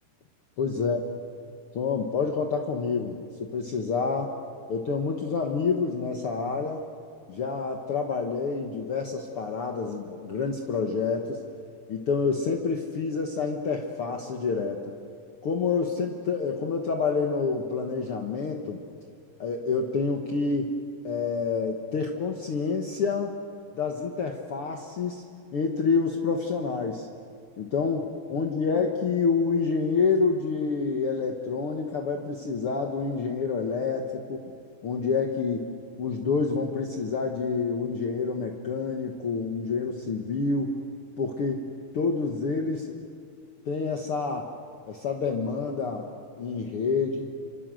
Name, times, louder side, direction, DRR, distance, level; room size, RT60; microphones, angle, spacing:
voice 1, 0.6-1.0 1.7-4.3 4.7-6.8 7.3-11.4 11.9-14.8 15.4-18.8 19.4-20.7 21.0-23.4 23.8-25.2 25.5-27.1 27.6-34.4 34.8-35.7 36.0-40.8 41.2-41.7 41.9-43.0 43.7-44.5 44.9-46.1 46.4-47.3, left 4 dB, 55° left, 2 dB, 1.9 m, -28 dB
28.0 x 25.5 x 7.7 m, 2.2 s
omnidirectional pair, 3.7 m